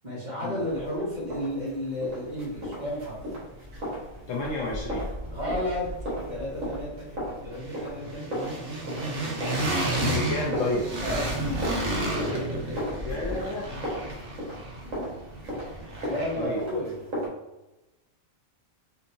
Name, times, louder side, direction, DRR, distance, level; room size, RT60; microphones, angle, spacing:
voice 1, 0.0-3.2 5.3-5.8 6.3-7.1 7.4-8.2 9.0-9.9 11.0-12.7 13.0-13.1 14.8-15.1 16.0-16.9, left 1 dB, 35° right, -8 dB, 1.7 m, -33 dB
sound 1, 0.6-17.3, equal, 70° right, 1.7 m, -37 dB
sound 2, 2.6-2.7 3.0-4.1 4.4-16.6, right 2 dB, 50° right, 0.8 m, -33 dB
voice 2, 4.3-5.1 9.9-10.8 13.0-13.7 16.3-16.6, left 2 dB, 70° left, -3 dB, 1.0 m, -30 dB
4.5 x 2.7 x 2.6 m, 0.99 s
omnidirectional pair, 1.4 m